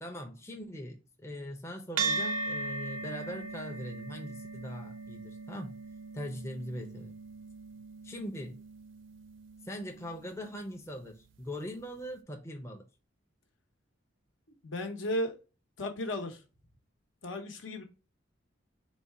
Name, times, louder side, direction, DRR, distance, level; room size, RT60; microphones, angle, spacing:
voice 1, 0.0-5.8 6.1-7.2 8.0-8.6 9.6-12.9, equal, 15° left, 0.5 m, -41 dB
sound 1, 2.0-10.6, right 3 dB, 70° right, 0.5 m, -38 dB
voice 2, 14.6-15.4 15.8-16.4 17.2-17.8, left 1 dB, 70° left, 1.0 m, -34 dB
4.1 x 2.2 x 4.6 m
head